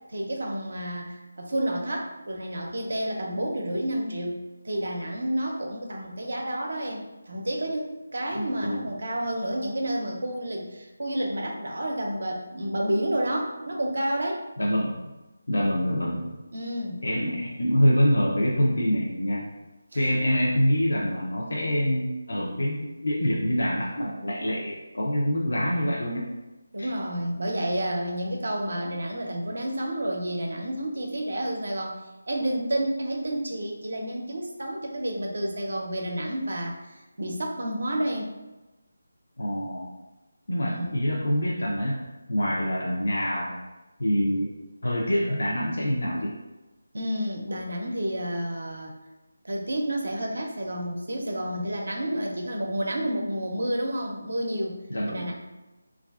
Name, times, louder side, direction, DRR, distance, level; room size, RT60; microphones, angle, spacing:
voice 1, 0.1-14.4 16.5-17.0 19.9-20.1 26.7-32.0 32.3-38.3 40.7-40.9 46.9-48.9 49.4-54.8 55.0-55.3, right 1 dB, 75° right, 1 dB, 0.5 m, -30 dB
voice 2, 8.3-8.9 14.6-15.0 15.5-16.3 17.0-19.4 19.9-26.2 26.8-26.9 39.4-39.9 40.5-42.0 42.3-43.6 44.0-44.5 44.8-46.3 54.9-55.3, equal, 80° left, -4 dB, 0.5 m, -25 dB
3.1 x 2.4 x 2.3 m, 1.1 s
figure-of-eight pair, 170°, 0 cm